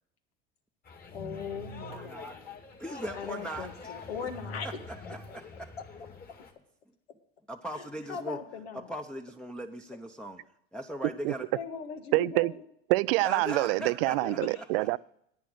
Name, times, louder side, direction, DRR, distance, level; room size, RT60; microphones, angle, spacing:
sound 1, 0.9-6.5, left 3 dB, 30° left, 2.1 m, -45 dB
voice 1, 1.1-2.4 3.1-4.7 5.0-5.4 7.7-8.9 11.5-12.6 14.2-14.6, left 6 dB, 85° left, 1.5 m, -40 dB
voice 2, 1.8-2.4 2.8-3.7 4.6-4.7 5.1-5.7 7.5-8.4 8.7-10.4 10.7-11.4 13.2-14.6, right 1 dB, 5° left, 0.8 m, -39 dB
voice 3, 12.1-12.5 12.9-15.0, right 21 dB, 70° right, 0.5 m, -26 dB
10.5 x 9.2 x 6.4 m
hypercardioid pair, 80°, 30 cm